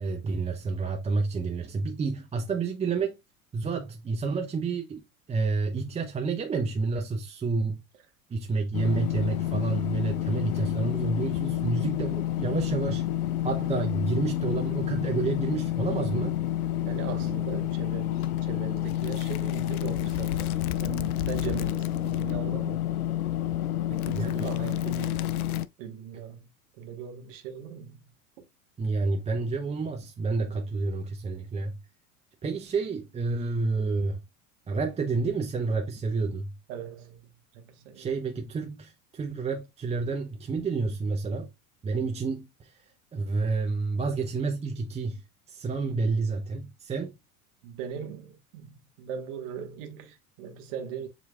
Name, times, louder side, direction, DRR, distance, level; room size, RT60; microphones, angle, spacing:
voice 1, 0.0-3.2 3.5-7.8 8.3-13.1 13.4-16.4 24.1-24.5 28.8-31.8 32.4-34.2 34.7-36.5 37.9-41.5 41.8-42.8 43.1-45.2 45.5-47.2, right 4 dB, 15° right, 0.6 m, -29 dB
sound 1, 8.7-25.7, left 13 dB, 75° left, 0.5 m, -29 dB
voice 2, 16.8-20.5 20.8-22.8 23.9-25.4 25.8-26.5 26.8-28.0 36.7-38.3 47.6-51.1, right 8 dB, 60° right, 1.3 m, -39 dB
7.4 x 3.0 x 2.3 m
hypercardioid pair, 80°, 43 cm